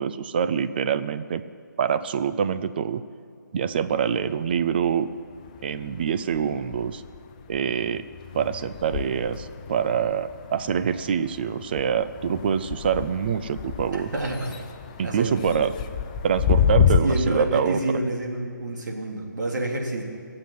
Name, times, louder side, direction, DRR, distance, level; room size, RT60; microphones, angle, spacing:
voice 1, 0.0-1.4 1.8-3.0 3.5-5.1 5.6-7.0 7.5-8.1 8.3-14.1 15.0-15.7 16.2-17.8, right 7 dB, 30° right, 12 dB, 0.5 m, -25 dB
sound 1, 3.8-5.0 5.3-17.0, left 8 dB, 25° left, 0.6 m, -29 dB
voice 2, 13.9-14.6 15.0-15.7 17.0-20.0, right 2 dB, 65° right, 0 dB, 3.4 m, -28 dB
19.0 x 7.7 x 9.4 m, 2.4 s
figure-of-eight pair, 155°, 11 cm